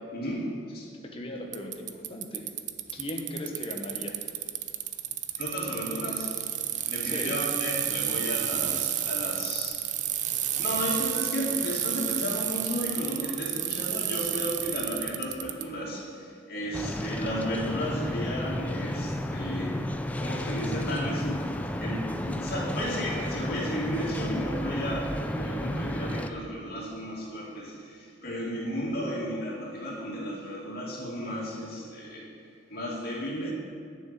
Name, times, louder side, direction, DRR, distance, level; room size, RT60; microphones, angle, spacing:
voice 1, 0.1-0.9 5.3-6.4 6.9-10.0 10.6-32.3 32.7-33.5, equal, 55° left, -4 dB, 2.5 m, -34 dB
voice 2, 1.0-2.5 2.9-4.2 7.0-7.3, left 1 dB, 30° left, 2 dB, 1.3 m, -37 dB
Bicycle, 1.5-15.6, right 11 dB, 40° right, 0.5 m, -31 dB
sound 1, 16.7-26.3, left 1 dB, 10° left, 0.4 m, -32 dB
10.5 x 6.3 x 7.6 m, 2.4 s
head